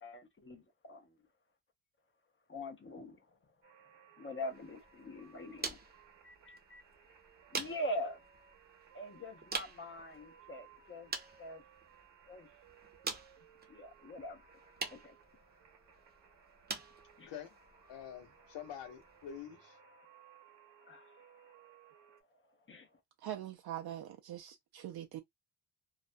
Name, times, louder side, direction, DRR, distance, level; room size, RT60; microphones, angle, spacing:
voice 1, 0.0-1.1 2.5-3.2 4.2-5.8 6.2-6.8 7.5-8.2 8.9-11.1 11.4-11.6 12.3-12.5 13.7-14.4 14.9-15.1 17.2-17.3 20.9-21.1 22.7-22.9, equal, 30° left, 0.5 m, -43 dB
sound 1, 3.6-22.2, right 7 dB, 85° right, 0.8 m, -62 dB
sound 2, 4.4-19.4, right 4 dB, 25° right, 0.6 m, -47 dB
voice 2, 17.9-19.8, left 9 dB, 85° left, 0.8 m, -47 dB
voice 3, 23.2-25.2, right 11 dB, 60° right, 0.5 m, -43 dB
2.4 x 2.1 x 2.5 m
cardioid pair, 120°, 42 cm